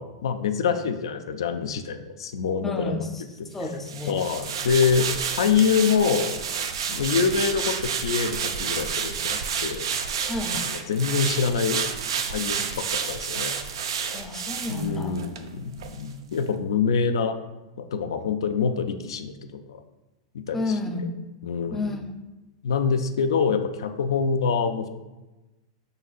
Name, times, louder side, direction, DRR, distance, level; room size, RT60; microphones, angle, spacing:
voice 1, 0.0-3.1 4.1-5.1 5.4-6.3 6.9-9.9 10.7-11.8 12.3-13.5 14.7-17.4 17.8-19.8 20.3-21.1 21.4-21.9 22.6-24.9, left 6 dB, 90° left, 7 dB, 0.3 m, -25 dB
voice 2, 2.6-3.1 3.5-4.2 10.3-10.6 14.1-15.2 20.5-21.1 21.7-22.0, left 2 dB, 10° left, 3 dB, 0.4 m, -30 dB
sound 1, 3.9-15.4 15.8-15.9, right 7 dB, 85° right, 0.4 m, -30 dB
4.9 x 3.9 x 2.4 m, 1.1 s
supercardioid pair, 135°, 2 cm